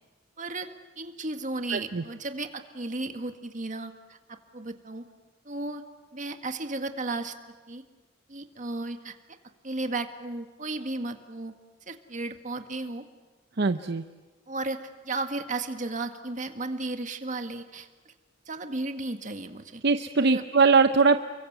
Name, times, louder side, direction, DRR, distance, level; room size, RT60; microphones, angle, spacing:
voice 1, 0.4-5.1 5.5-5.8 6.1-7.3 7.7-7.8 8.3-9.1 9.6-11.5 11.9-13.0 14.5-18.1 18.5-19.8 20.2-20.4, right 2 dB, 40° right, 7 dB, 1.9 m, -34 dB
voice 2, 1.7-2.0 13.6-14.0 19.8-21.2, right 4 dB, 60° right, 9 dB, 0.7 m, -21 dB
29.5 x 23.5 x 8.1 m, 1.3 s
head